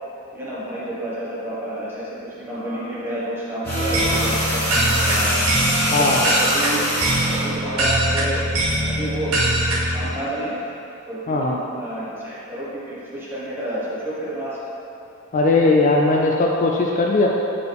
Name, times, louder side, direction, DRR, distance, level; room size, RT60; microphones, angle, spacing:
voice 1, 0.3-5.3 6.0-6.8 7.3-8.4 8.7-10.5 11.1-14.6, right 1 dB, 10° right, -9 dB, 1.3 m, -30 dB
sound 1, 3.6-7.5 8.7-8.9, equal, 10° left, 1.4 m, -24 dB
sound 2, 3.6-10.1, right 1 dB, 85° right, 0.9 m, -22 dB
voice 2, 5.9-6.2 11.3-11.6 15.3-17.3, left 2 dB, 40° left, 0 dB, 0.4 m, -18 dB
6.7 x 4.2 x 3.5 m, 2.8 s
head